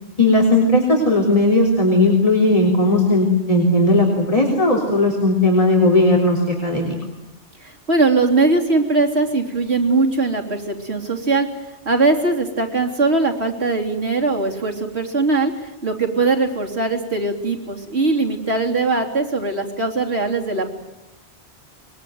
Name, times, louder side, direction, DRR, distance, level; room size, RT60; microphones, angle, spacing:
voice 1, 0.2-6.9, left 2 dB, 30° left, 0 dB, 3.9 m, -16 dB
voice 2, 7.6-11.5 11.9-20.7, right 3 dB, 70° right, 1 dB, 3.6 m, -20 dB
24.5 x 22.5 x 9.4 m, 0.94 s
omnidirectional pair, 1.1 m